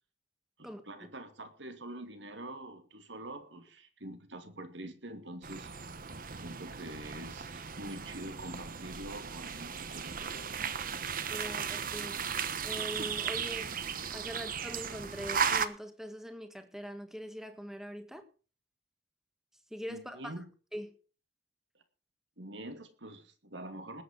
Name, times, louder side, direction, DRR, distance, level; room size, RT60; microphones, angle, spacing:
voice 1, 0.6-5.7 6.3-10.5 19.9-20.5 21.7-21.8 22.4-24.0, right 1 dB, 70° right, 2.5 m, -45 dB
sound 1, 5.4-15.7, right 6 dB, 50° right, 1.1 m, -36 dB
voice 2, 11.3-12.1 12.6-13.7 14.1-18.2 19.7-20.3 20.7-20.9, equal, ahead, 1.6 m, -42 dB
19.5 x 8.7 x 5.3 m
head